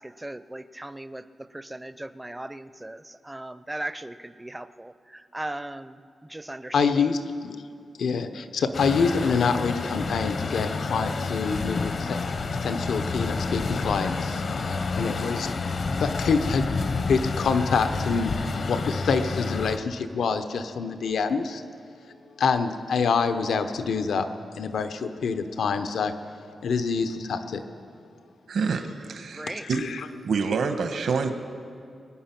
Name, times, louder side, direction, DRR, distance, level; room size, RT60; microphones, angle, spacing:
voice 1, 0.0-7.2 29.3-29.7, right 1 dB, 10° right, 12 dB, 0.4 m, -38 dB
voice 2, 6.7-7.6 8.0-12.2 12.6-15.5 16.0-16.7 17.1-21.6 22.4-26.1 26.6-27.6 29.5-30.1, left 5 dB, 85° left, 9 dB, 0.8 m, -26 dB
Truck, 8.7-19.8, left 4 dB, 50° left, 0.7 m, -29 dB
voice 3, 28.5-29.9 30.2-31.3, right 5 dB, 75° right, 7 dB, 1.1 m, -27 dB
23.0 x 9.7 x 5.9 m, 2.3 s
wide cardioid pair, 165°, 0 cm